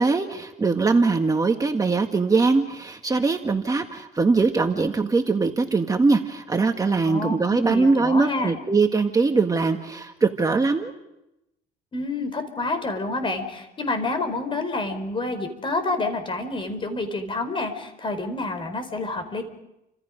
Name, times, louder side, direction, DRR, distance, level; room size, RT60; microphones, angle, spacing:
voice 1, 0.0-10.9, right 4 dB, 20° right, 4 dB, 1.6 m, -21 dB
voice 2, 7.0-8.6 11.9-19.4, left 2 dB, 30° left, 8 dB, 4.6 m, -28 dB
30.0 x 26.5 x 5.2 m, 0.89 s
cardioid pair, 110°, 17 cm